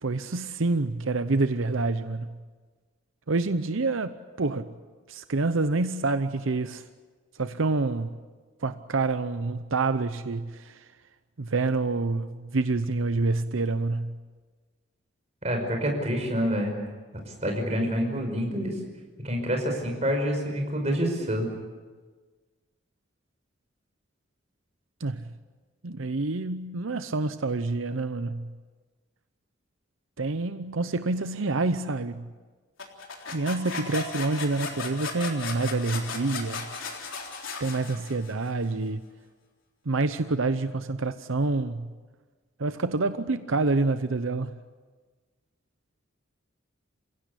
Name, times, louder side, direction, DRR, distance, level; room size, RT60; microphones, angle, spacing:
voice 1, 0.0-2.4 3.3-4.7 5.1-6.8 7.4-8.1 8.6-10.8 11.4-14.2 25.0-25.3 25.8-28.5 30.2-32.3 33.3-36.7 37.6-39.0 39.9-41.9 42.6-44.5, right 3 dB, 85° right, 0.8 m, -27 dB
voice 2, 15.4-16.7 17.4-18.7 19.2-21.5, equal, 35° right, 5.4 m, -27 dB
sound 1, 32.8-38.5, left 4 dB, 80° left, 3.7 m, -36 dB
28.0 x 16.5 x 8.4 m
head